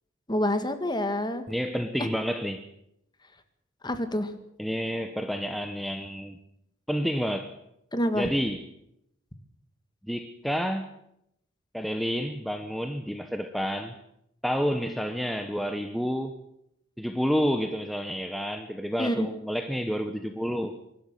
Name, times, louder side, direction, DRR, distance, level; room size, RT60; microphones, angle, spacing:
voice 1, 0.3-1.4 2.0-2.1 3.8-4.3 7.9-8.3 19.0-19.3, left 1 dB, 20° left, 9 dB, 1.8 m, -27 dB
voice 2, 1.5-2.6 4.6-6.4 6.9-7.5 8.1-8.7 10.0-10.9 11.7-14.0 14.4-16.4 17.0-20.7, equal, ahead, 6 dB, 0.9 m, -29 dB
23.5 x 12.5 x 9.1 m, 0.80 s
head